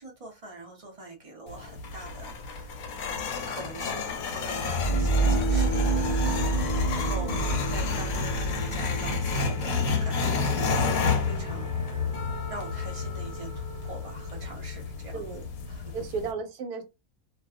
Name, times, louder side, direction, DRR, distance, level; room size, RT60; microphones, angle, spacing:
voice 1, 0.0-2.7 3.0-7.3 7.7-12.1 12.5-15.4 15.7-16.0, right 2 dB, 50° right, 0.4 m, -44 dB
sound 1, 1.5-16.3, left 5 dB, 70° left, 0.9 m, -30 dB
sound 2, 4.4-10.4, right 3 dB, 50° left, 0.5 m, -28 dB
Wind instrument woodwind instrument, 4.7-15.1, right 8 dB, 25° right, 1.0 m, -47 dB
voice 2, 7.2-7.6 15.1-15.5 15.9-16.8, right 5 dB, 80° right, 1.1 m, -35 dB
2.5 x 2.3 x 2.3 m
omnidirectional pair, 1.6 m